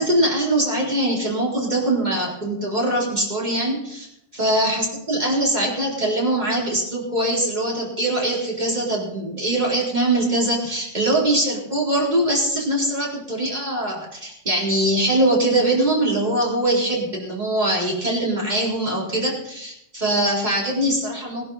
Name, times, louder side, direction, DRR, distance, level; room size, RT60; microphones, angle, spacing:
voice 1, 0.0-4.1 4.3-21.5, right 1 dB, 35° right, -3 dB, 4.4 m, -22 dB
21.0 x 11.0 x 4.2 m, 0.74 s
omnidirectional pair, 1.2 m